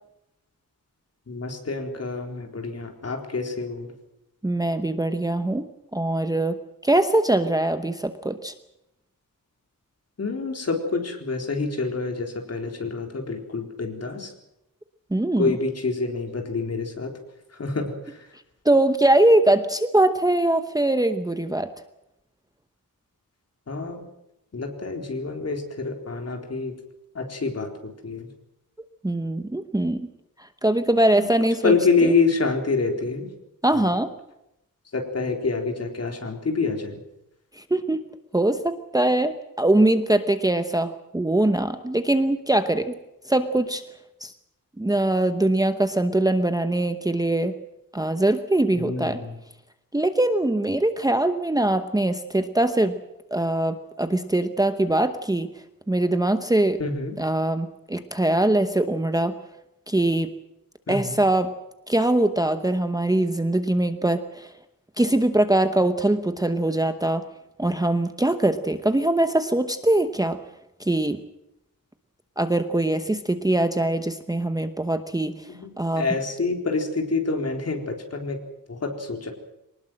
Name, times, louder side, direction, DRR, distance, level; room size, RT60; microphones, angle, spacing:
voice 1, 1.3-3.9 10.2-14.3 15.4-17.1 17.6-18.3 23.7-24.0 24.5-26.7 27.1-28.3 31.1-31.3 31.6-33.3 33.7-33.9 34.9-37.0 48.7-49.3 56.8-57.2 60.9-61.2 75.5-78.4 78.7-79.3, left 4 dB, 45° left, 3 dB, 3.9 m, -27 dB
voice 2, 4.4-5.7 5.9-6.6 6.8-8.5 15.1-15.5 18.6-21.7 29.0-30.1 30.6-31.7 33.6-34.1 37.6-38.0 38.3-42.9 43.3-43.8 44.2-44.3 44.8-47.5 47.9-49.2 49.9-53.0 53.3-55.5 55.9-56.8 57.2-59.3 59.9-60.3 60.9-61.5 61.9-64.5 65.0-67.2 67.6-70.4 70.8-71.2 72.4-75.5 75.8-76.1, right 1 dB, 10° right, 9 dB, 0.9 m, -22 dB
23.5 x 19.5 x 7.6 m, 0.86 s
wide cardioid pair, 175°, 34 cm